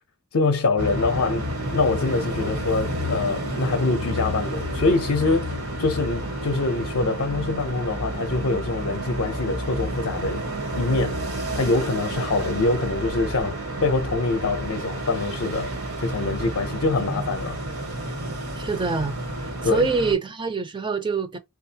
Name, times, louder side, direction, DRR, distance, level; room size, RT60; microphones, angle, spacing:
voice 1, 0.3-1.4 1.7-10.4 10.7-11.3 11.5-15.7 16.0-17.6 19.6-19.9, left 3 dB, 60° left, 0.5 m, -24 dB
sound 1, 0.8-20.1, right 1 dB, 75° right, 1.3 m, -30 dB
voice 2, 18.6-21.4, right 4 dB, 20° right, 0.4 m, -26 dB
4.0 x 2.4 x 2.7 m
head